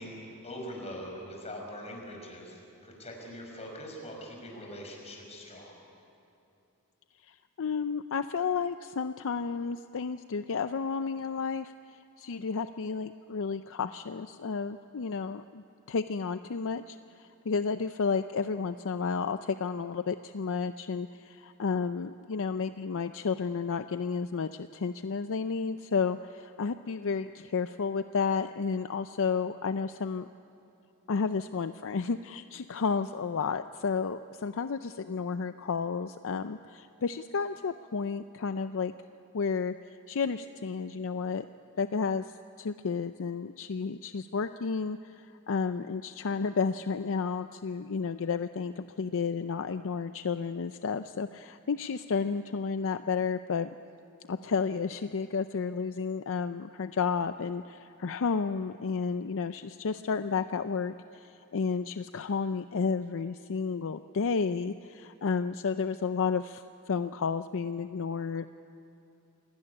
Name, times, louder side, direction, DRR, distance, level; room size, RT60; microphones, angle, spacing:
voice 1, 0.0-5.8, equal, 30° left, 1 dB, 5.6 m, -42 dB
voice 2, 7.3-11.7 12.2-30.3 31.1-38.9 39.3-39.7 40.1-41.5 41.8-53.7 54.3-68.4, left 5 dB, 60° left, 10 dB, 0.5 m, -32 dB
27.5 x 18.0 x 9.7 m, 2.8 s
head